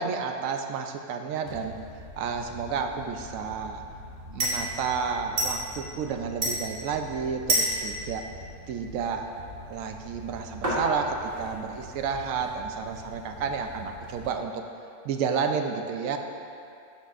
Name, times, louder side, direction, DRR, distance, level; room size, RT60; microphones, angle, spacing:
voice 1, 0.0-1.8 2.2-3.8 4.3-8.3 8.7-9.3 9.7-14.6 15.0-16.2, right 6 dB, 70° right, 5 dB, 0.9 m, -31 dB
sound 1, 1.5-14.3, right 1 dB, 35° right, 1.9 m, -34 dB
11.5 x 7.4 x 2.5 m, 2.5 s
omnidirectional pair, 1.7 m